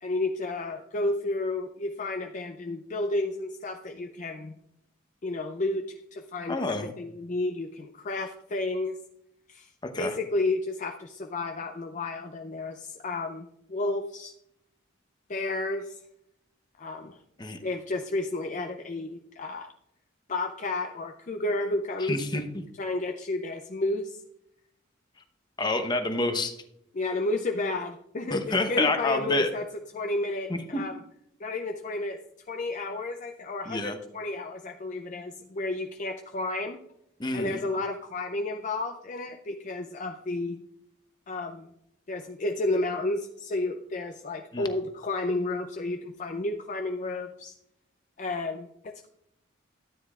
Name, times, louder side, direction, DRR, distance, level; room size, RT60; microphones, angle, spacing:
voice 1, 0.0-4.5 5.2-9.0 9.5-9.7 10.0-14.3 15.3-16.0 16.8-17.2 17.6-19.7 20.3-22.2 22.8-24.2 26.9-29.6 29.9-31.0 31.4-32.2 32.5-36.8 37.3-40.6 41.3-41.7 42.1-47.5 48.2-49.1, left 2 dB, 40° left, 4 dB, 0.5 m, -31 dB
voice 2, 6.5-6.9 9.9-10.1 17.4-17.6 22.0-22.6 25.6-26.5 28.3-29.5 30.5-30.8 33.7-33.9 37.2-37.6 44.5-44.7, left 2 dB, 20° left, 6 dB, 0.9 m, -28 dB
13.0 x 9.5 x 2.4 m, 0.77 s
head